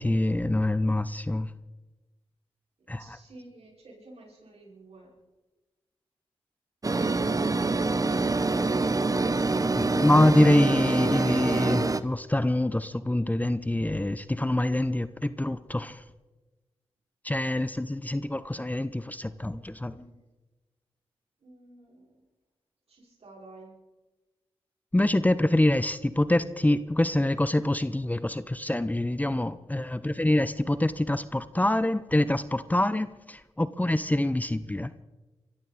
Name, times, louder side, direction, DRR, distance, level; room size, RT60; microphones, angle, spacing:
voice 1, 0.0-1.5 2.9-3.0 9.7-16.0 17.2-19.9 24.9-34.9, left 1 dB, 15° left, 14 dB, 0.8 m, -25 dB
voice 2, 3.0-5.2 19.9-20.1 21.4-22.2 22.9-23.7, right 2 dB, 70° right, -1 dB, 5.3 m, -51 dB
sound 1, 6.8-12.0, right 3 dB, 35° right, 0.9 m, -25 dB
24.5 x 14.0 x 4.2 m, 1.2 s
supercardioid pair, 40°, 11 cm